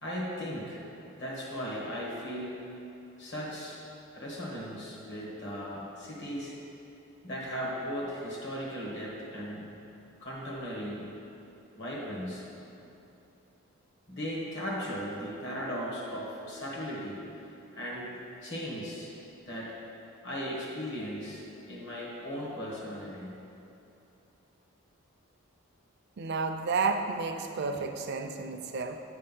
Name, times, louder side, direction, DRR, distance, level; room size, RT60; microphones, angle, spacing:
voice 1, 0.0-0.8 1.2-2.5 3.2-3.8 4.1-6.5 7.2-9.8 10.2-11.0 11.8-12.5 12.8-12.9 14.1-17.2 17.7-18.1 18.4-19.1 19.4-19.7 20.2-23.3, equal, 50° left, -4 dB, 1.4 m, -37 dB
voice 2, 26.2-29.0, right 4 dB, 50° right, 6 dB, 0.4 m, -31 dB
8.9 x 3.3 x 5.4 m, 2.8 s
head